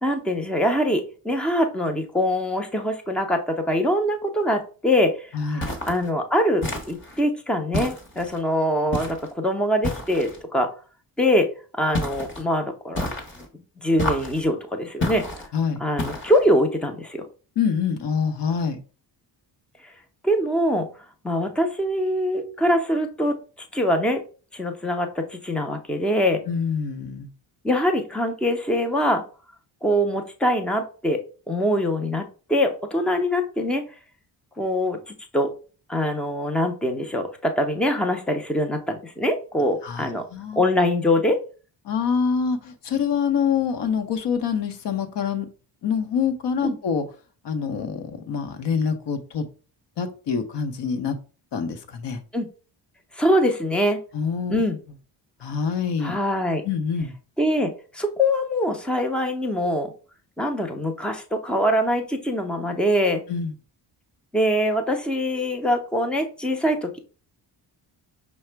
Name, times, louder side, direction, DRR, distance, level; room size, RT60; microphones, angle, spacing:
voice 1, 0.0-10.7 11.2-11.5 11.8-13.1 13.8-15.2 15.8-17.2 20.2-20.9 21.2-23.4 23.7-24.2 24.5-26.4 27.6-29.2 29.8-33.8 34.6-35.5 35.9-40.2 40.5-41.4 46.6-46.8 52.3-52.5 53.1-54.0 54.5-54.8 56.0-56.6 57.4-59.9 60.4-63.2 64.3-67.0, equal, ahead, 5 dB, 0.4 m, -23 dB
voice 2, 5.3-5.7 15.5-15.8 17.6-18.8 26.5-27.3 39.8-40.6 41.8-45.5 45.8-47.0 47.4-49.4 50.0-51.2 51.5-52.2 54.1-54.6 55.4-56.2 56.6-57.1 63.3-63.5, left 6 dB, 65° left, 9 dB, 0.8 m, -25 dB
sound 1, 5.6-6.1 6.6-7.2 7.7-8.4 8.9-9.3 9.8-10.4 11.9-12.4 13.0-13.5 14.0-14.5 15.0-15.5 16.0-16.5, left 1 dB, 25° left, 0.9 m, -29 dB
5.7 x 2.1 x 4.4 m, 0.38 s
wide cardioid pair, 175°, 46 cm